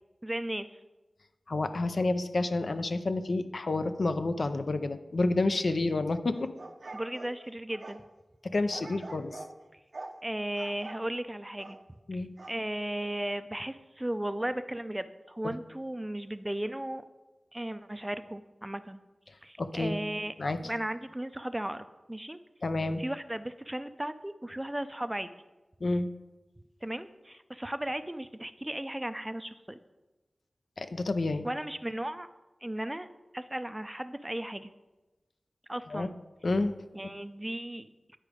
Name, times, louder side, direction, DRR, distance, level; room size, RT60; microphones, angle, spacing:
voice 1, 0.2-0.8 6.9-8.0 10.2-11.8 12.1-17.0 17.5-19.0 19.4-20.3 20.6-22.4 23.0-25.3 26.8-29.8 31.4-32.3 32.6-33.1 33.3-34.7 35.7-36.1 36.9-38.2, right 1 dB, 15° right, 11 dB, 0.4 m, -36 dB
voice 2, 1.5-6.5 8.4-9.3 12.1-12.3 15.4-15.5 19.6-20.0 20.4-20.6 22.6-23.0 25.8-26.1 30.8-31.5 35.9-36.1 36.4-36.8, left 2 dB, 65° left, 9 dB, 0.5 m, -29 dB
sound 1, 6.3-8.0 8.7-9.5 9.9-10.2 10.6-11.0 11.6-11.8 12.4-12.6, right 2 dB, 60° right, 0.7 m, -44 dB
9.9 x 4.8 x 5.0 m, 1.1 s
wide cardioid pair, 75°, 0 cm